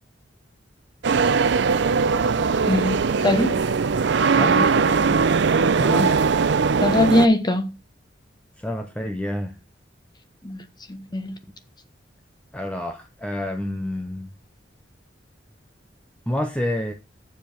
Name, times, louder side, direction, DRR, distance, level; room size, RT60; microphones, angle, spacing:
sound 1, 1.0-7.3, right 5 dB, 70° right, 0.5 m, -20 dB
voice 1, 2.7-3.6 6.8-7.7 10.4-11.4, left 1 dB, 25° left, 1.1 m, -21 dB
voice 2, 4.4-5.2 5.8-6.2 8.6-9.6 12.5-14.3 16.3-16.9, left 1 dB, 5° left, 0.6 m, -28 dB
7.0 x 5.1 x 5.9 m
head